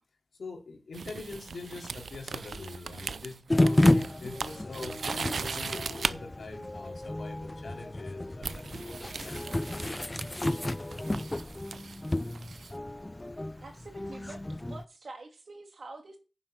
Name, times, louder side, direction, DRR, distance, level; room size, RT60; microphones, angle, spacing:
voice 1, 0.3-10.7, left 3 dB, 85° left, 3.0 m, -44 dB
sound 1, 0.9-6.1 7.4-7.6 8.4-12.7, right 5 dB, 85° right, 0.5 m, -38 dB
sound 2, 3.5-14.8, left 1 dB, 20° left, 0.5 m, -31 dB
voice 2, 13.6-16.2, right 3 dB, 70° right, 2.8 m, -46 dB
10.0 x 7.3 x 6.1 m
wide cardioid pair, 75°, 0 cm